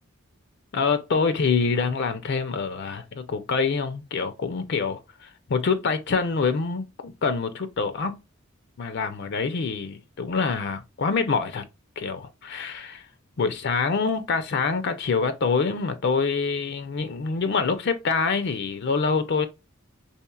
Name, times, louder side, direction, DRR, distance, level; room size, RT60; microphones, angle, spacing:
voice 1, 0.7-8.2 8.8-11.7 12.0-13.1 13.4-19.5, left 4 dB, 55° left, 0.5 m, -26 dB
4.2 x 3.1 x 2.3 m
head